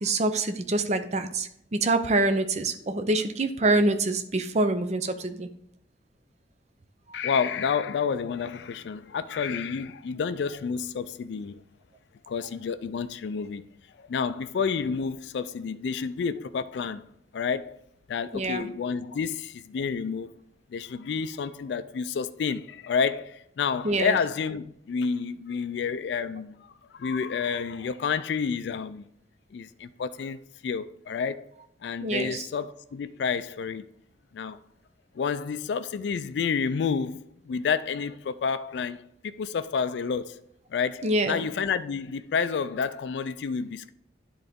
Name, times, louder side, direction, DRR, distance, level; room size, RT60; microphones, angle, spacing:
voice 1, 0.0-5.5 18.3-18.7 23.8-24.2 32.0-32.5 41.0-41.5, right 2 dB, 35° right, 0.5 m, -26 dB
voice 2, 7.1-11.6 12.3-13.7 14.0-17.0 17.3-17.8 18.1-20.3 20.7-29.1 29.5-31.5 31.8-33.9 34.3-34.6 35.1-40.4 40.7-43.9, left 6 dB, 70° left, 0.3 m, -30 dB
9.9 x 3.9 x 3.6 m
head